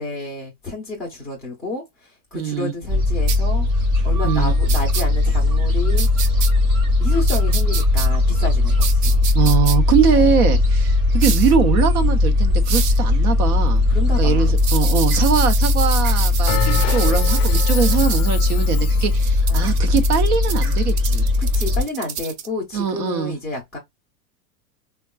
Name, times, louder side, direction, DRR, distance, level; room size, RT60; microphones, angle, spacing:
voice 1, 0.0-3.7 4.0-6.1 7.0-9.3 10.1-10.4 13.9-15.1 19.5-19.8 21.4-23.8, left 2 dB, ahead, 0.4 m, -30 dB
voice 2, 2.3-2.7 4.2-4.5 9.3-13.9 14.2-21.3 22.7-23.3, right 7 dB, 80° right, 0.9 m, -22 dB
Gull seagull, 2.9-21.8, left 2 dB, 35° right, 1.0 m, -18 dB
sound 1, 3.3-3.4 4.7-5.0 6.0-6.5 7.3-8.1 8.8-9.8 11.2-11.5 12.6-13.0 14.6-18.2 19.2-22.5, right 8 dB, 50° right, 0.6 m, -28 dB
Bell, 16.5-19.3, left 14 dB, 55° left, 0.5 m, -28 dB
3.5 x 2.2 x 2.2 m
supercardioid pair, 160°, 44 cm